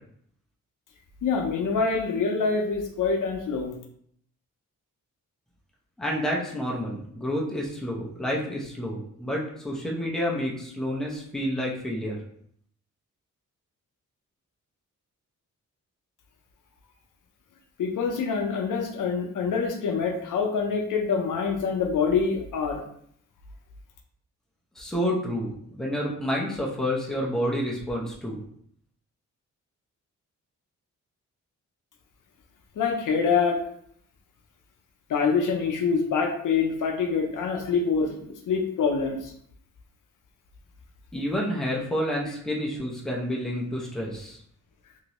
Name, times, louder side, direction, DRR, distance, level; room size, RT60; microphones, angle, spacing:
voice 1, 1.2-3.8 17.8-22.8 32.8-33.6 35.1-39.3, left 5 dB, 80° left, 3 dB, 0.6 m, -25 dB
voice 2, 6.0-12.2 24.8-28.4 41.1-44.4, equal, ahead, -3 dB, 0.6 m, -29 dB
2.9 x 2.7 x 2.9 m, 0.67 s
wide cardioid pair, 115°, 31 cm